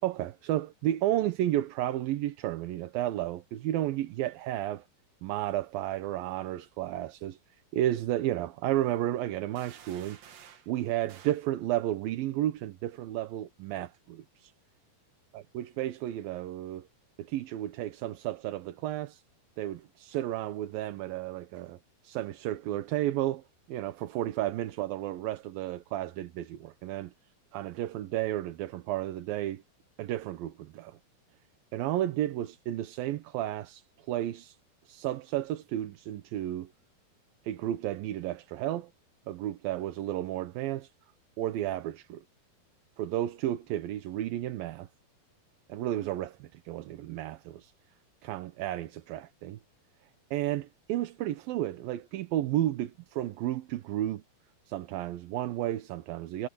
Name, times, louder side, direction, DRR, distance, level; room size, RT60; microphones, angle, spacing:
voice 1, 0.0-4.9 5.2-7.4 7.7-10.2 10.7-14.5 15.5-16.9 17.2-19.2 19.6-21.8 22.0-27.1 27.5-29.6 30.0-31.0 31.7-34.6 34.9-36.7 37.4-38.9 39.3-40.9 41.4-42.2 43.0-44.9 45.7-47.7 48.2-49.6 50.3-54.2 54.7-56.5, right 13 dB, 75° right, 2.7 m, -32 dB
sound 1, 9.6-10.7 11.1-11.5, right 9 dB, 55° right, 2.3 m, -52 dB
omnidirectional pair, 4.4 m